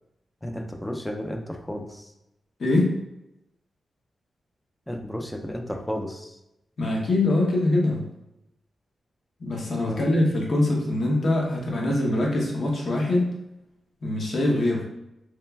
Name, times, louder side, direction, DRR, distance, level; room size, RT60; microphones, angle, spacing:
voice 1, 0.4-2.1 4.9-6.4 9.9-10.1, equal, 10° left, 5 dB, 0.3 m, -33 dB
voice 2, 2.6-2.9 6.8-8.0 9.4-13.3 14.0-14.9, left 2 dB, 60° left, -1 dB, 0.7 m, -23 dB
3.1 x 2.3 x 2.2 m, 0.87 s
cardioid pair, 65°, 0 cm